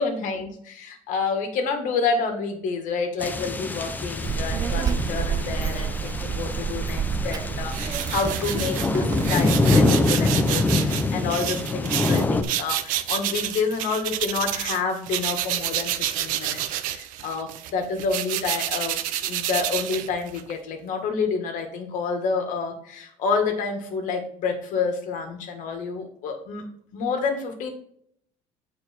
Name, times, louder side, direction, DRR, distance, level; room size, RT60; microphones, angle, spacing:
voice 1, 0.0-27.7, left 5 dB, 65° left, 4 dB, 1.9 m, -29 dB
sound 1, 3.2-12.4, left 2 dB, 10° left, 0.6 m, -25 dB
Child speech kid speaking, 4.2-9.5, right 7 dB, 25° right, 0.3 m, -29 dB
sound 2, 7.7-14.8 15.1-20.5, right 12 dB, 70° right, 0.7 m, -29 dB
8.7 x 4.7 x 4.4 m, 0.65 s
cardioid pair, 140°, 14 cm